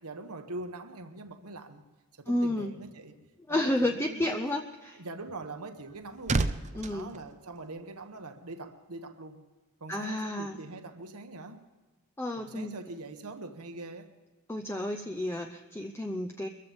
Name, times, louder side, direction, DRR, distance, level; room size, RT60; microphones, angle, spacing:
voice 1, 0.0-1.8 2.1-3.2 3.5-4.4 4.9-6.4 6.9-9.4 9.8-11.6 12.4-14.1, right 2 dB, 85° right, 1.2 m, -43 dB
voice 2, 2.3-2.7 3.5-5.0 6.8-7.1 9.9-10.6 12.2-12.7 14.5-16.5, left 1 dB, 10° left, 0.6 m, -31 dB
sound 1, 5.5-8.2 8.5-8.8, right 3 dB, 30° right, 0.5 m, -33 dB
23.0 x 15.0 x 3.6 m
head